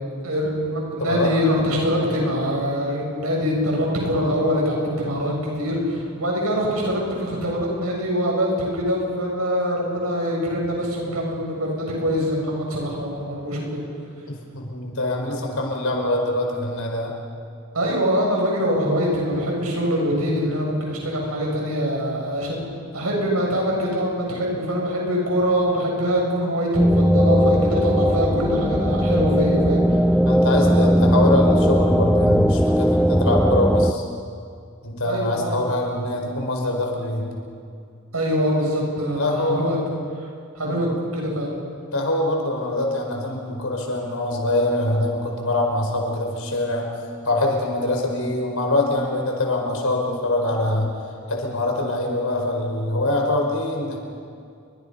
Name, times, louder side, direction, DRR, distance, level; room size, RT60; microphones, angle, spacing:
voice 1, 0.2-13.8 17.7-29.8 30.6-30.9 35.0-35.6 38.1-39.8 40.2-40.3 40.6-41.5, equal, 80° right, -2 dB, 7.8 m, -24 dB
voice 2, 1.0-1.3 14.3-17.1 27.2-27.4 30.2-34.0 34.8-37.3 39.1-39.8 40.6-40.8 41.9-46.9 47.2-50.9 51.3-54.0, left 1 dB, 70° left, 1 dB, 5.0 m, -24 dB
sound 1, 26.8-33.9, equal, ahead, 0.5 m, -18 dB
29.5 x 24.0 x 5.6 m, 2.3 s
head